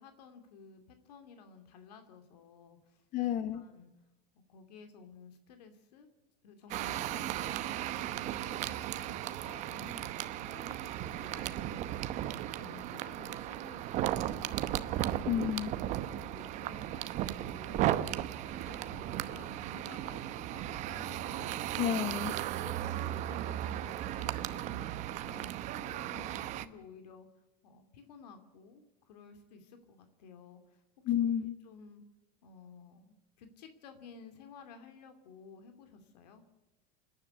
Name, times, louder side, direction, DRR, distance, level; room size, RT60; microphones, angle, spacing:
voice 1, 0.0-3.0 3.5-3.9 4.5-6.1 6.4-12.2 12.6-14.9 15.2-15.5 15.9-21.8 22.6-27.3 27.6-30.8 31.4-32.0 32.4-36.4, left 5 dB, 85° left, 7 dB, 2.6 m, -54 dB
voice 2, 3.1-3.6 15.3-15.7 21.8-22.3 31.0-31.5, left 10 dB, 35° left, 11 dB, 1.0 m, -30 dB
sound 1, 6.7-26.7, right 13 dB, 35° right, 0.9 m, -36 dB
27.0 x 10.5 x 9.6 m, 1.0 s
supercardioid pair, 155°, 20 cm